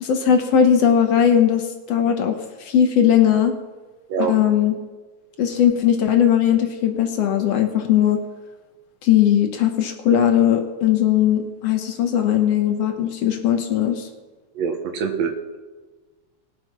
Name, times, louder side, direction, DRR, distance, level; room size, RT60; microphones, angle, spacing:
voice 1, 0.0-3.5 4.3-4.7 5.4-8.2 9.0-14.1, left 9 dB, 65° left, 5 dB, 1.8 m, -18 dB
voice 2, 14.6-15.6, right 6 dB, 70° right, 5 dB, 2.3 m, -25 dB
19.0 x 7.6 x 5.8 m, 1.3 s
omnidirectional pair, 3.3 m